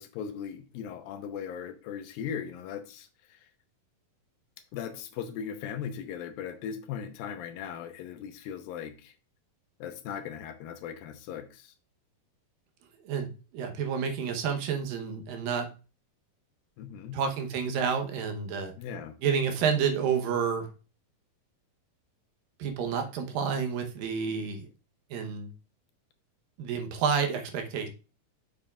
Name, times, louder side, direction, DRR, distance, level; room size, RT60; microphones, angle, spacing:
voice 1, 0.0-3.4 4.7-9.1 9.8-11.7 16.8-17.2 18.8-19.1, left 8 dB, 85° left, 2.6 m, -38 dB
voice 2, 13.5-15.7 17.1-18.7 19.2-20.7 22.6-24.7 25.1-25.5 26.6-27.9, right 6 dB, 75° right, 2.7 m, -29 dB
7.6 x 7.2 x 2.4 m
omnidirectional pair, 4.1 m